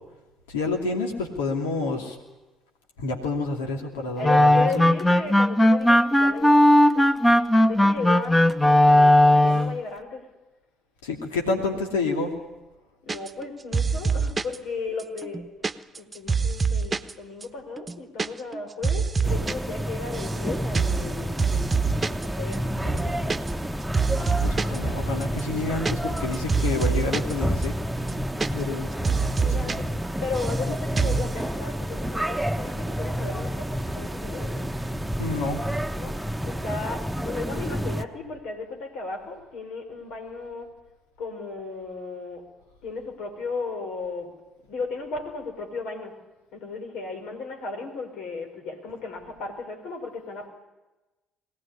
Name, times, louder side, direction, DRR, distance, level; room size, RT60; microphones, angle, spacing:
voice 1, 0.5-2.1 3.0-4.9 11.0-12.3 24.2-27.7 28.5-28.9 29.4-29.8 35.2-35.6, left 3 dB, 85° left, 2 dB, 2.8 m, -29 dB
voice 2, 4.2-10.2 13.0-15.4 16.0-21.6 22.2-23.3 29.0-29.9 30.2-34.7 36.0-36.2 36.4-40.7 41.2-42.4 42.8-44.3 44.7-46.1 46.5-50.5, left 4 dB, 65° left, 5 dB, 5.3 m, -35 dB
sound 1, 4.2-9.8, left 1 dB, 15° left, 1.5 m, -17 dB
sound 2, 13.1-13.5 13.7-14.6 15.0-17.1 17.4-17.5 17.8-18.3 18.5-19.5 19.8-20.4 20.7-21.1 21.4-22.3 22.5-22.6 22.9-23.7 23.9-24.8 25.2-27.3 27.6-27.7 28.0-28.8 29.0-29.8 30.0-30.6 31.0-31.3, right 5 dB, 30° right, 1.1 m, -25 dB
sound 3, 19.2-38.1, equal, 5° right, 1.3 m, -30 dB
23.0 x 18.0 x 9.9 m, 1.1 s
hypercardioid pair, 55°, 0 cm